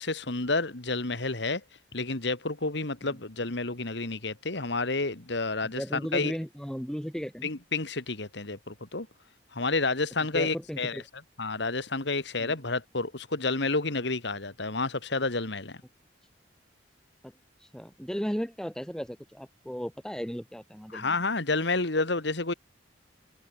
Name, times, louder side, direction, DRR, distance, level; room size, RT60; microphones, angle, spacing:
voice 1, 0.0-1.6 1.9-6.3 7.4-9.1 9.5-11.0 11.4-15.8 20.9-22.5, left 3 dB, 65° left, 2.3 m, -30 dB
voice 2, 5.6-7.5 10.3-11.0 12.4-12.5 17.2-17.3 17.7-21.2, equal, 5° left, 2.7 m, -35 dB
open air
head